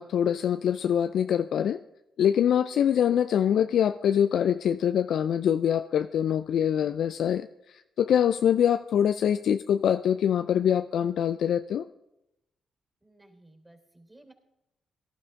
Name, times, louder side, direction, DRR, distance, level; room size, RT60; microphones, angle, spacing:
voice 1, 0.0-1.8 2.2-7.5 8.0-11.8, left 9 dB, 70° left, 10 dB, 0.4 m, -24 dB
voice 2, 13.0-14.3, right 1 dB, 20° right, 3 dB, 3.7 m, -56 dB
18.0 x 11.5 x 3.6 m, 0.88 s
hypercardioid pair, 45°, 0 cm